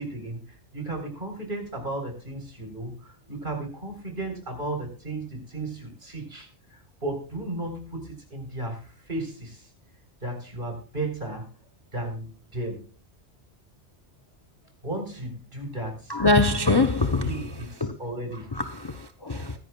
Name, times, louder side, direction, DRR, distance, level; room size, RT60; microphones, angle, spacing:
voice 1, 0.0-9.6 10.2-11.5 11.9-12.8 14.8-16.2 16.7-16.9 17.2-18.5, right 2 dB, 50° right, 4.2 m, -34 dB
voice 2, 16.1-17.5 17.8-18.0 18.5-19.5, left 2 dB, 25° left, 0.7 m, -23 dB
22.5 x 10.5 x 2.3 m
omnidirectional pair, 1.2 m